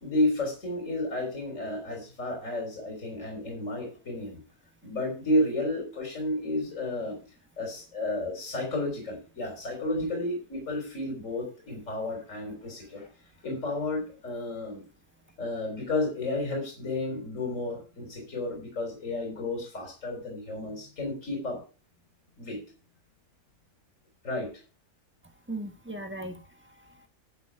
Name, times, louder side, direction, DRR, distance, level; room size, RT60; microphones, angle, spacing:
voice 1, 0.0-4.4 4.8-7.2 7.6-13.1 13.4-14.8 15.4-21.6 22.4-22.6 24.2-24.5, left 1 dB, 55° left, 2 dB, 4.1 m, -32 dB
voice 2, 25.5-27.1, right 1 dB, 10° right, 5 dB, 1.4 m, -39 dB
11.0 x 7.3 x 4.7 m, 0.36 s
omnidirectional pair, 1.6 m